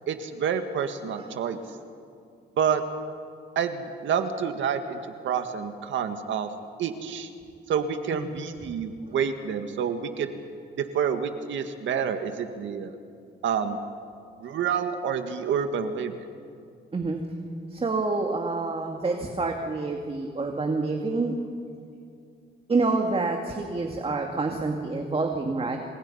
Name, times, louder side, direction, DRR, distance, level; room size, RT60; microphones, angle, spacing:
voice 1, 0.1-1.6 2.6-2.8 3.6-5.0 5.2-6.5 6.8-7.3 7.7-10.4 10.8-12.9 13.4-13.8 14.4-16.1, right 7 dB, 75° right, 7 dB, 1.9 m, -28 dB
voice 2, 17.7-21.4 22.7-25.8, right 3 dB, 30° right, 3 dB, 2.4 m, -27 dB
28.5 x 27.0 x 5.7 m, 2.4 s
cardioid pair, 90°, 20 cm